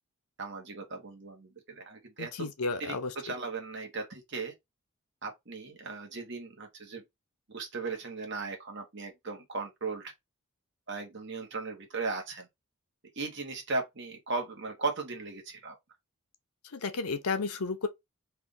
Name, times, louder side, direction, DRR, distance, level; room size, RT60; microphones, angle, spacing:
voice 1, 0.4-2.5 2.8-4.5 5.2-7.0 7.5-10.1 10.9-12.5 13.2-15.7, right 3 dB, 50° right, 1.3 m, -37 dB
voice 2, 2.2-3.1 16.7-17.9, left 4 dB, 85° left, 0.7 m, -32 dB
3.4 x 2.6 x 3.8 m
head